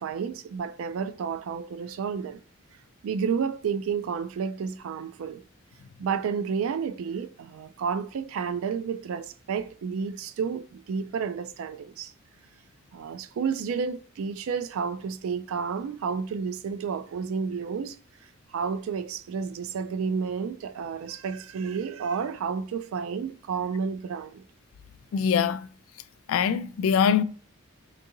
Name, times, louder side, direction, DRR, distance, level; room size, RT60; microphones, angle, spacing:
voice 1, 0.0-2.4 3.0-5.4 6.0-12.1 12.9-18.0 18.5-24.4, right 6 dB, 80° right, 0.3 m, -31 dB
voice 2, 25.1-25.7 26.3-27.2, left 7 dB, 80° left, 0.3 m, -23 dB
3.8 x 2.7 x 2.6 m
head